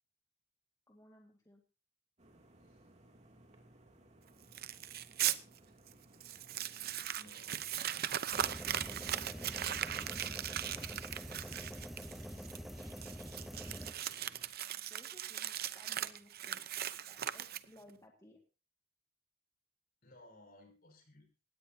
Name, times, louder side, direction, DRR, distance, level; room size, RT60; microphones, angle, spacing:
voice 1, 0.9-1.6 13.7-13.9 14.9-18.4, left 1 dB, 15° left, 1 dB, 1.9 m, -61 dB
sound 1, 2.2-14.5, right 1 dB, 35° right, 2.7 m, -62 dB
voice 2, 2.6-2.9 7.1-8.1 8.5-11.6 20.0-21.3, left 1 dB, 45° left, 5 dB, 6.1 m, -62 dB
Crumpling crinkling, 4.5-5.4 5.9-6.0 6.2-17.9, right 11 dB, 50° right, 0.7 m, -39 dB
sound 2, 8.3-13.9, equal, ahead, 0.7 m, -46 dB
19.0 x 16.5 x 2.8 m, 0.33 s
head